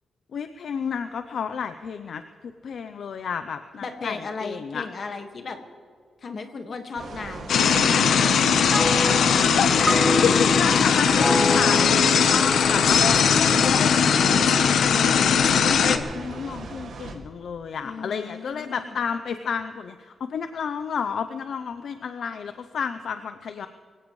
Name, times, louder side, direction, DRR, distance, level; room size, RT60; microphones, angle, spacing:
voice 1, 0.3-2.2 2.6-4.9 9.3-23.7, left 6 dB, 65° left, 9 dB, 0.6 m, -31 dB
voice 2, 3.8-5.6 6.2-8.4 17.8-18.9, left 4 dB, 45° left, 5 dB, 1.7 m, -35 dB
sound 1, 6.9-17.1, right 4 dB, 75° right, 2.1 m, -38 dB
sound 2, 7.5-16.0, left 7 dB, 80° left, 0.9 m, -19 dB
sound 3, 8.7-14.2, left 2 dB, 5° left, 0.4 m, -28 dB
24.0 x 16.5 x 3.2 m, 2.1 s
wide cardioid pair, 160°, 0 cm